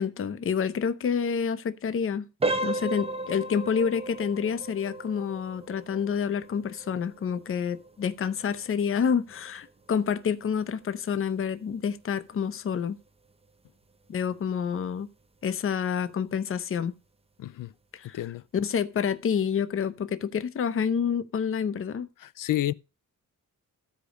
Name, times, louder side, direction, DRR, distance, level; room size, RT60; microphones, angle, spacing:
voice 1, 0.0-2.3 2.6-13.0 14.1-15.1 15.4-16.9 17.9-18.2 18.5-22.1, left 7 dB, 40° left, 0.7 m, -28 dB
sound 1, 2.4-13.1 13.4-13.7 14.3-14.4 14.9-15.0, right 2 dB, 20° right, 0.7 m, -36 dB
voice 2, 17.4-17.7 18.1-18.4 22.2-22.7, left 13 dB, 75° left, 0.5 m, -30 dB
14.0 x 5.1 x 5.1 m
wide cardioid pair, 145°, 33 cm